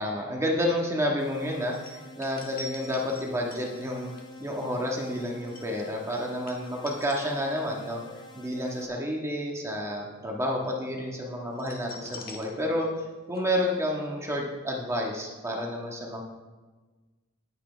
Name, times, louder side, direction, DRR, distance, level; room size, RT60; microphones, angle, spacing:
voice 1, 0.0-4.1 4.4-8.0 8.3-12.9 13.3-16.2, equal, 15° right, -1 dB, 1.5 m, -30 dB
sound 1, 1.2-8.9, equal, 20° left, 1.3 m, -48 dB
sound 2, 1.7-7.8 8.1-8.4 11.5-13.1 13.3-13.4, left 2 dB, 45° left, 1.6 m, -45 dB
18.5 x 7.9 x 3.4 m, 1.3 s
head